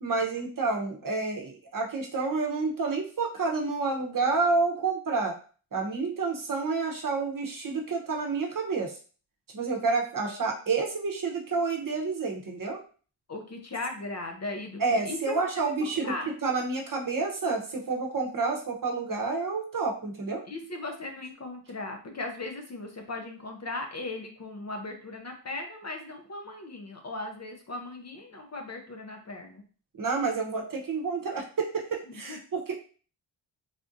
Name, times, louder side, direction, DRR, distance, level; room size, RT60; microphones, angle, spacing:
voice 1, 0.0-5.3 5.7-8.9 9.5-12.8 14.8-16.1 16.4-20.4 30.0-32.7, right 4 dB, 45° right, 1 dB, 0.8 m, -29 dB
voice 2, 13.3-15.4 16.0-16.3 20.4-29.6 32.3-32.4, left 2 dB, 35° left, 3 dB, 0.6 m, -37 dB
3.5 x 2.5 x 2.5 m, 0.39 s
cardioid pair, 90°, 48 cm